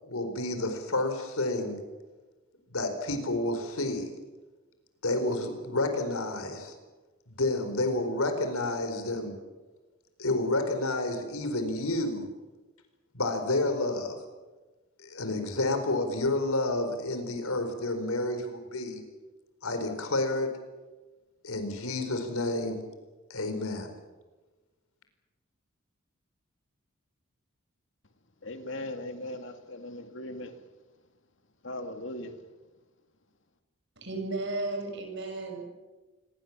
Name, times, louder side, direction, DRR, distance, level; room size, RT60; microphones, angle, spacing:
voice 1, 0.0-1.8 2.7-4.1 5.0-6.7 7.3-9.3 10.2-12.3 13.1-14.2 15.0-19.0 19.6-20.6 21.4-22.8 23.3-23.9, left 2 dB, 85° left, 4.6 m, -30 dB
voice 2, 28.4-30.6 31.6-32.4, left 1 dB, 60° left, 2.3 m, -39 dB
voice 3, 34.0-35.7, right 2 dB, 55° right, 6.8 m, -34 dB
27.0 x 21.0 x 7.5 m
head